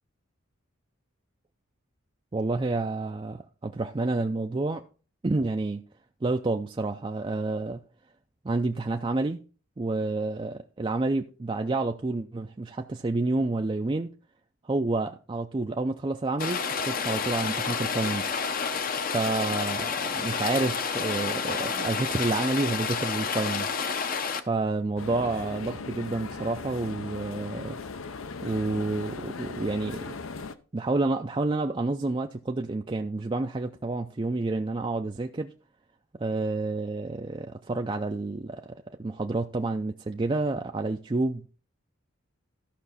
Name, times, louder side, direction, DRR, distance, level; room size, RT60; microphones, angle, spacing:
voice 1, 2.3-4.8 5.2-5.8 6.2-7.8 8.4-9.4 9.8-14.1 14.6-18.7 19.0-24.1 24.5-27.8 28.4-30.1 30.7-35.5 36.2-41.5, right 2 dB, 25° right, 0.4 m, -29 dB
Rain, 16.4-24.4, left 5 dB, 45° left, 0.7 m, -29 dB
sound 1, 25.0-30.5, left 4 dB, 75° left, 0.7 m, -38 dB
13.5 x 5.9 x 4.1 m
head